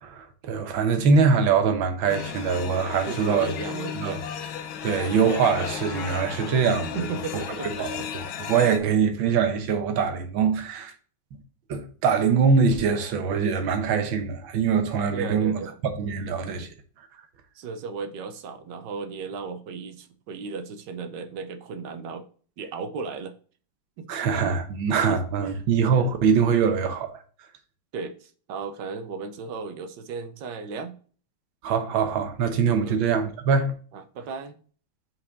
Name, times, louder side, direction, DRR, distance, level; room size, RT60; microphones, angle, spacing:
voice 1, 0.0-3.5 4.0-4.2 4.8-7.0 7.8-7.9 8.1-8.2 8.5-10.9 11.7-15.5 16.0-16.7 24.1-27.2 31.6-33.7, right 6 dB, 85° right, 1.8 m, -23 dB
sound 1, 2.1-8.8, left 8 dB, 85° left, 1.6 m, -34 dB
voice 2, 3.1-4.2 6.9-8.1 15.1-15.8 17.5-22.2 22.6-23.3 24.0-24.1 25.1-25.2 25.4-25.6 27.9-31.0 32.8-33.0 33.9-34.5, right 5 dB, 70° right, 1.3 m, -35 dB
5.8 x 4.8 x 3.9 m
omnidirectional pair, 2.1 m